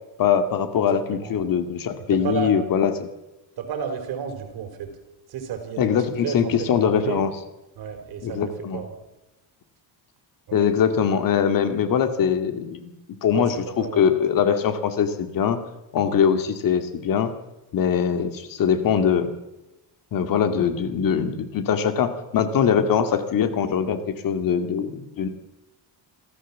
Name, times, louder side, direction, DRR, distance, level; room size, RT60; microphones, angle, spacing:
voice 1, 0.2-3.1 5.8-7.3 8.2-8.8 10.5-12.9 13.2-15.6 15.9-17.3 17.7-19.3 20.1-25.3, left 7 dB, 55° left, 8 dB, 2.2 m, -22 dB
voice 2, 0.9-1.4 2.1-2.5 3.6-4.9 5.3-7.2 7.8-8.9 10.5-10.7 13.3-14.0, right 7 dB, 60° right, 6 dB, 4.8 m, -32 dB
27.0 x 15.0 x 7.4 m, 1.0 s
cardioid pair, 160°, 41 cm